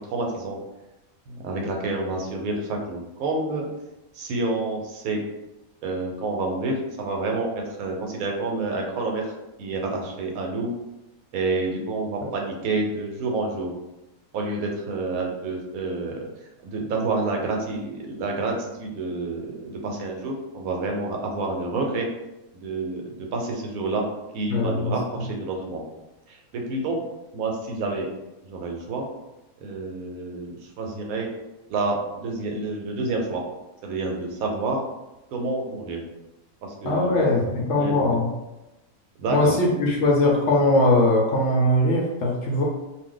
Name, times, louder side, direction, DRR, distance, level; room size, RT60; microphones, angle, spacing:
voice 1, 0.1-0.6 1.3-3.6 4.1-5.2 5.8-9.2 9.6-10.7 11.3-13.7 14.3-16.2 16.6-22.1 22.5-24.0 24.3-25.8 26.3-27.0 27.3-28.1 28.4-29.1 29.6-31.3 31.7-33.4 33.8-34.8 35.3-36.0 36.6-37.3 37.7-38.1 39.2-39.6, right 3 dB, 80° right, 1 dB, 1.0 m, -28 dB
voice 2, 24.5-24.9 36.8-38.3 39.3-42.6, left 1 dB, 65° left, -1 dB, 0.8 m, -20 dB
2.5 x 2.1 x 3.7 m, 0.99 s
omnidirectional pair, 1.5 m